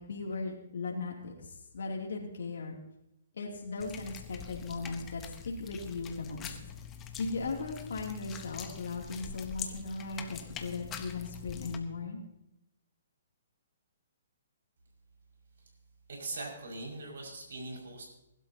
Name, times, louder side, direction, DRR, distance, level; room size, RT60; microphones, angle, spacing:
voice 1, 0.0-1.3 1.7-2.8 3.4-6.5 7.2-12.2, left 3 dB, 80° left, -1 dB, 2.8 m, -37 dB
sound 1, 3.8-11.8, left 8 dB, 20° left, 1.0 m, -44 dB
voice 2, 16.1-18.1, right 2 dB, 75° right, -1 dB, 5.9 m, -41 dB
21.0 x 12.0 x 2.9 m, 0.86 s
hypercardioid pair, 150°, 0 cm